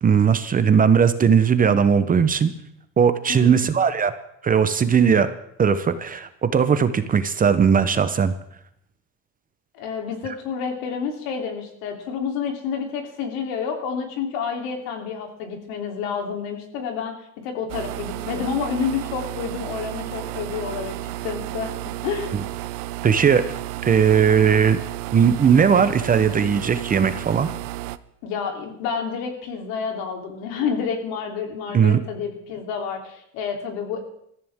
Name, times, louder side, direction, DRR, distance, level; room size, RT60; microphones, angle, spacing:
voice 1, 0.0-2.5 3.0-4.1 4.4-5.3 5.6-8.3 23.0-23.4 23.8-24.8 25.1-27.5 31.7-32.0, right 7 dB, 25° right, 11 dB, 0.8 m, -18 dB
voice 2, 3.3-3.7 9.7-17.1 17.4-21.7 22.0-22.3 28.2-34.1, left 6 dB, 75° left, 3 dB, 3.4 m, -29 dB
sound 1, 17.7-28.0, right 15 dB, 65° right, 0.7 m, -32 dB
22.0 x 14.0 x 3.6 m, 0.74 s
cardioid pair, 130°, 36 cm